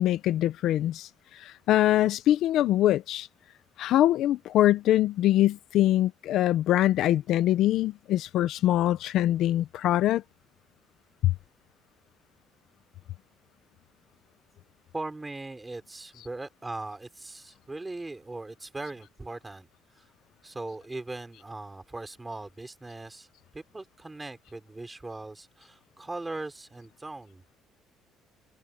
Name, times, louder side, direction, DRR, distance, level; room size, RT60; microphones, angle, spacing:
voice 1, 0.0-3.3 3.8-10.2 11.2-11.3, left 13 dB, 55° left, 0.5 m, -23 dB
voice 2, 14.9-19.7 20.0-20.1 20.4-23.3 23.5-27.4, right 2 dB, 10° right, 4.4 m, -39 dB
cardioid pair, 180°, 0 cm